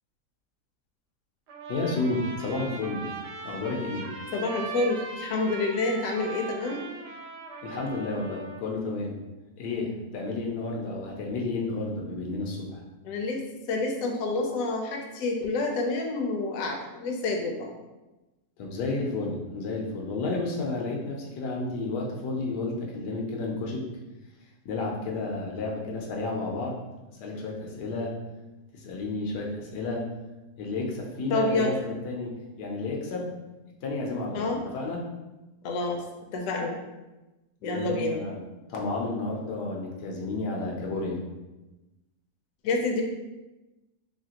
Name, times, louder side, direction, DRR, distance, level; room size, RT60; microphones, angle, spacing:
Trumpet, 1.5-8.6, right 3 dB, 85° right, 1.2 m, -39 dB
voice 1, 1.7-3.1 3.4-4.1 7.6-9.2 9.6-12.8 18.6-23.8 24.6-26.8 27.2-28.1 28.7-30.0 30.6-33.3 33.8-34.5 34.7-35.0 37.6-38.4 38.7-41.2, left 3 dB, 85° left, -1 dB, 1.3 m, -31 dB
voice 2, 4.3-6.9 13.0-17.8 31.3-31.8 34.3-34.6 35.6-36.0 36.3-36.8 37.6-38.2 42.6-43.0, left 3 dB, 70° left, 2 dB, 0.9 m, -28 dB
3.2 x 2.8 x 2.8 m, 1.1 s
omnidirectional pair, 1.7 m